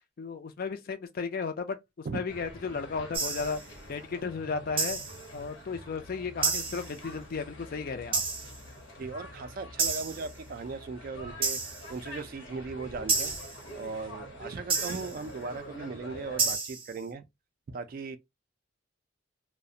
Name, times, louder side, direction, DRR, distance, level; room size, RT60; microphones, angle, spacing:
voice 1, 0.2-3.6 3.9-5.0 5.3-8.2, left 5 dB, 45° left, 0.4 m, -34 dB
sound 1, 2.3-16.6, left 1 dB, 65° left, 0.8 m, -46 dB
sound 2, 3.1-3.6 4.8-5.2 6.4-6.9 8.1-8.6 9.8-10.3 11.4-11.9 13.1-13.6 14.7-15.2 16.4-16.9, right 4 dB, 25° right, 0.7 m, -30 dB
voice 2, 9.0-11.6 11.9-13.3 13.7-17.2 17.7-18.2, right 4 dB, 45° right, 0.3 m, -38 dB
2.4 x 2.1 x 2.6 m
head